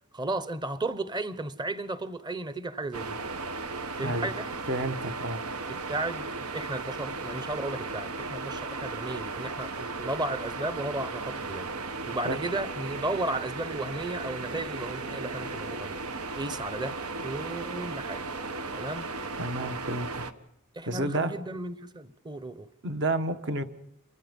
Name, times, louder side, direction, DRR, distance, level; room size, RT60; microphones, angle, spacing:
voice 1, 0.1-3.2 4.0-4.5 5.7-11.7 12.1-16.0 16.4-17.0 17.2-18.2 18.7-19.1 20.7-22.7, right 2 dB, 20° right, 0.9 m, -34 dB
sound 1, 2.9-20.3, right 3 dB, 85° right, 1.3 m, -36 dB
voice 2, 4.0-4.3 4.7-5.4 12.2-12.4 19.4-20.2 20.9-21.3 22.8-23.6, right 2 dB, 55° right, 1.5 m, -30 dB
28.0 x 24.5 x 5.4 m
head